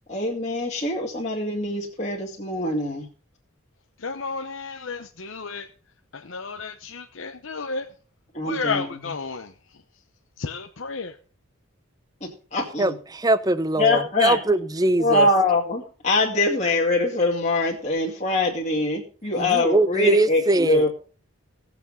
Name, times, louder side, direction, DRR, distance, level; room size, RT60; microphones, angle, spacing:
voice 1, 0.1-3.1 8.3-9.1 12.2-12.9 13.8-14.4 15.0-20.9, left 2 dB, 30° left, 2.3 m, -23 dB
voice 2, 4.0-5.7 6.1-7.9 8.4-9.5 10.4-11.2, left 4 dB, 60° left, 0.8 m, -32 dB
voice 3, 12.8-15.3 19.4-20.9, right 2 dB, 15° right, 0.6 m, -22 dB
18.0 x 7.2 x 5.4 m
head